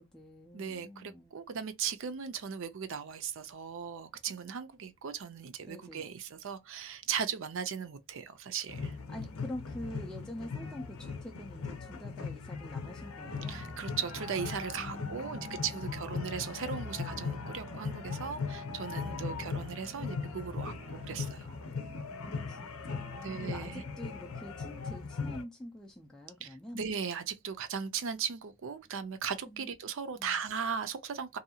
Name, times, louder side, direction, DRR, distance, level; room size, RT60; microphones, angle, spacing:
voice 1, 0.0-1.4 5.7-6.1 9.1-13.6 14.8-16.1 19.0-19.4 22.1-26.8 29.4-29.7 30.2-30.4, left 1 dB, 5° left, 0.3 m, -46 dB
voice 2, 0.5-9.0 13.5-21.6 23.2-23.8 26.4-31.4, right 7 dB, 60° right, 0.5 m, -37 dB
sound 1, 8.7-25.4, left 5 dB, 75° left, 0.6 m, -39 dB
sound 2, 13.2-21.2, right 2 dB, 90° right, 0.8 m, -50 dB
2.6 x 2.3 x 2.7 m
head